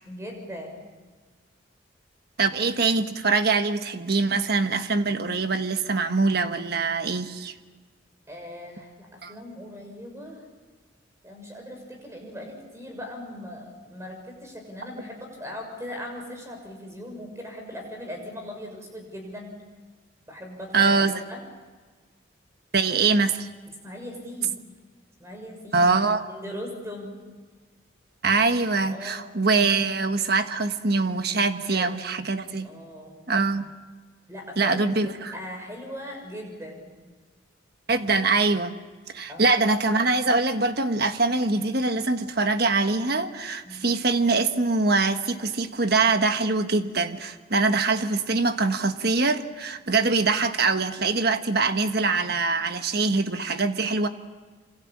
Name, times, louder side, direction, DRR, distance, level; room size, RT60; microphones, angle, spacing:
voice 1, 0.0-0.8 8.3-10.4 11.2-19.5 20.3-21.4 23.8-24.6 25.2-25.9 26.3-27.2 28.9-29.3 31.7-32.0 32.6-33.1 34.3-34.9 35.3-36.9 39.3-39.7 43.6-43.9, left 1 dB, 15° right, 2 dB, 6.5 m, -39 dB
voice 2, 2.4-7.5 9.2-9.3 20.7-21.2 22.7-23.5 25.7-26.2 28.2-32.7 33.3-33.7 34.6-35.3 37.9-38.7 39.1-54.1, right 3 dB, 55° right, 8 dB, 1.4 m, -23 dB
27.0 x 26.0 x 7.4 m, 1.4 s
head